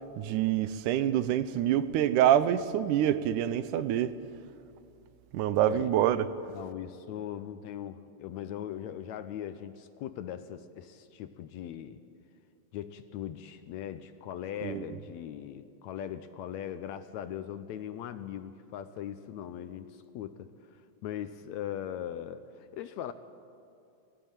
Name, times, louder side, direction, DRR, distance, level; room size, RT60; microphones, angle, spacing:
voice 1, 0.2-4.2 5.3-6.3 14.6-14.8, right 11 dB, 80° right, 14 dB, 2.2 m, -26 dB
voice 2, 6.5-12.0 12.7-23.1, left 10 dB, 75° left, 11 dB, 1.8 m, -40 dB
19.0 x 15.0 x 8.9 m, 2.6 s
omnidirectional pair, 3.6 m